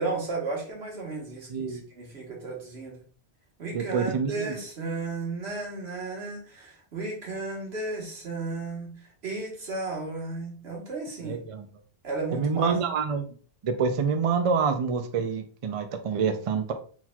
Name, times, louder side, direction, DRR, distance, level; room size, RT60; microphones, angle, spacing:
voice 1, 0.0-3.0 3.6-11.4 12.0-12.8, right 3 dB, 90° right, -2 dB, 1.7 m, -34 dB
voice 2, 1.5-1.8 3.7-4.6 11.2-11.7 12.3-13.2 13.6-16.7, right 5 dB, 45° right, 7 dB, 0.5 m, -27 dB
4.3 x 4.0 x 2.3 m, 0.42 s
omnidirectional pair, 1.0 m